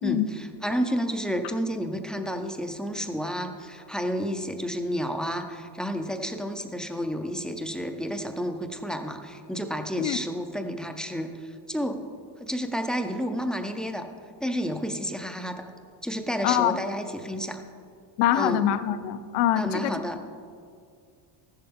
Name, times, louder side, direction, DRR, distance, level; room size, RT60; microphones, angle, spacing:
voice 1, 0.0-12.0 12.4-14.1 14.4-15.7 16.0-17.6 18.3-18.6 19.6-20.2, equal, ahead, 5 dB, 0.3 m, -31 dB
voice 2, 16.4-16.8 18.2-19.9, left 11 dB, 60° left, 12 dB, 0.7 m, -24 dB
14.5 x 11.0 x 3.5 m, 2.3 s
cardioid pair, 145°, 46 cm